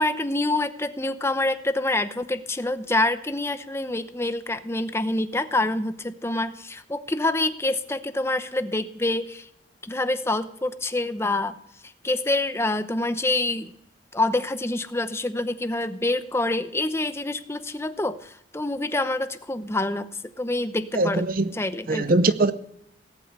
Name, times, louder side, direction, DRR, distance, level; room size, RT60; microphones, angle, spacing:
voice 1, 0.0-9.5 9.8-11.5 12.0-13.7 14.1-20.1 20.4-21.2 21.5-22.1, left 2 dB, 15° left, 0.7 m, -26 dB
voice 2, 20.9-21.5 21.9-22.5, right 2 dB, 50° right, 0.6 m, -21 dB
18.0 x 8.5 x 8.1 m
head